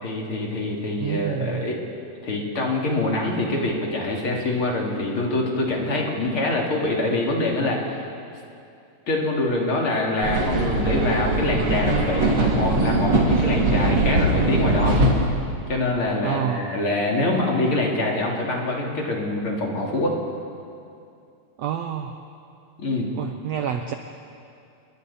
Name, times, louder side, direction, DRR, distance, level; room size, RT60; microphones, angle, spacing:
voice 1, 0.0-1.8 2.2-8.0 9.1-15.0 15.7-20.2 22.8-23.1, left 2 dB, 40° left, -1 dB, 3.2 m, -25 dB
voice 2, 1.0-1.6 16.2-16.8 21.6-22.2 23.1-23.9, right 9 dB, 80° right, 6 dB, 1.5 m, -28 dB
sound 1, 10.2-15.3, right 2 dB, 35° right, 2.6 m, -21 dB
28.5 x 22.5 x 4.2 m, 2.5 s
omnidirectional pair, 3.9 m